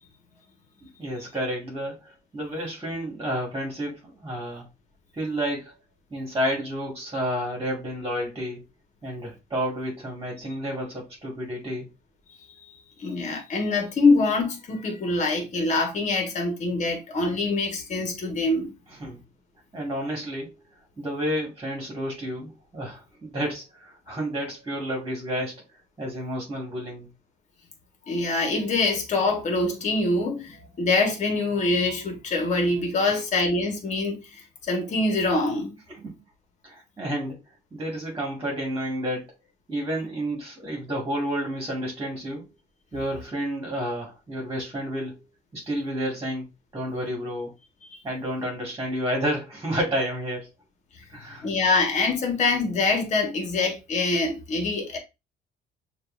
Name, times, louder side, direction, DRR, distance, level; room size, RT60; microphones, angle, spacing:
voice 1, 1.0-4.6 5.2-5.7 6.1-8.6 9.0-11.9 19.0-19.2 19.7-20.5 21.0-25.6 26.0-27.1 33.0-33.2 35.9-36.1 36.6-37.4 37.7-39.3 39.7-42.5 42.9-45.2 45.5-46.5 46.7-47.5 48.0-50.5 51.1-51.5, equal, 20° right, 2.0 m, -30 dB
voice 2, 13.0-18.7 28.1-35.8 47.9-48.0 51.4-55.0, left 3 dB, 45° left, 1.6 m, -24 dB
6.5 x 2.8 x 2.6 m
cardioid pair, 110°, 17 cm